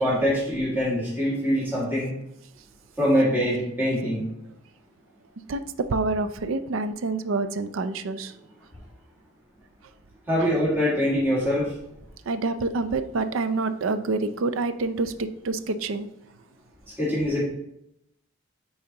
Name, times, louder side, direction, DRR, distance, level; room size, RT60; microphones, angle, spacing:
voice 1, 0.0-2.1 3.0-4.3 10.3-11.7 17.0-17.4, equal, 10° right, -8 dB, 2.0 m, -23 dB
voice 2, 5.5-8.3 10.4-10.5 12.3-16.1, right 3 dB, 90° right, 11 dB, 0.5 m, -27 dB
8.5 x 4.2 x 2.9 m, 0.78 s
head